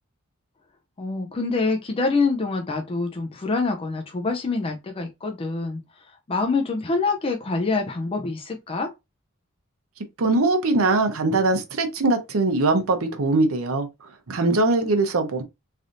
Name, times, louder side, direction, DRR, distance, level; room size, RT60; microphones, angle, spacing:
voice 1, 1.0-5.8 6.3-8.9, left 3 dB, 25° left, 0.4 m, -25 dB
voice 2, 10.2-13.9 14.3-15.4, right 2 dB, 75° right, 0.7 m, -21 dB
3.3 x 2.5 x 2.5 m
head